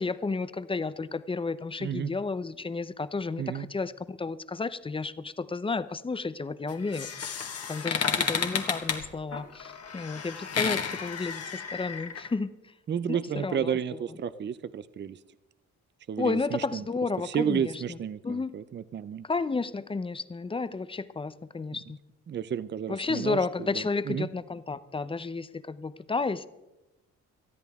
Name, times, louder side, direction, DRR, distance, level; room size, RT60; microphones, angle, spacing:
voice 1, 0.0-7.3 7.7-12.5 13.1-13.8 16.2-17.7 18.2-18.5 19.3-22.0 22.9-26.5, left 4 dB, 20° left, 14 dB, 0.7 m, -32 dB
voice 2, 1.8-2.1 3.4-3.7 12.9-15.2 16.1-16.8 17.2-19.3 22.3-24.3, right 8 dB, 35° right, 15 dB, 0.6 m, -32 dB
sound 1, 6.7-12.3, left 6 dB, 55° left, 1.6 m, -32 dB
19.5 x 13.0 x 3.6 m, 1.0 s
cardioid pair, 90°, 30 cm